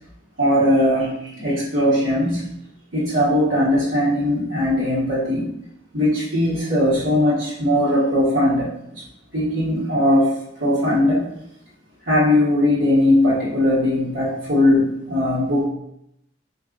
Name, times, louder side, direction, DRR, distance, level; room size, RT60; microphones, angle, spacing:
voice 1, 0.4-2.4 2.9-5.5 5.9-9.0 9.3-10.3 10.6-11.3 12.1-15.7, left 1 dB, 85° right, -9 dB, 1.3 m, -19 dB
3.4 x 2.6 x 3.8 m, 0.77 s
head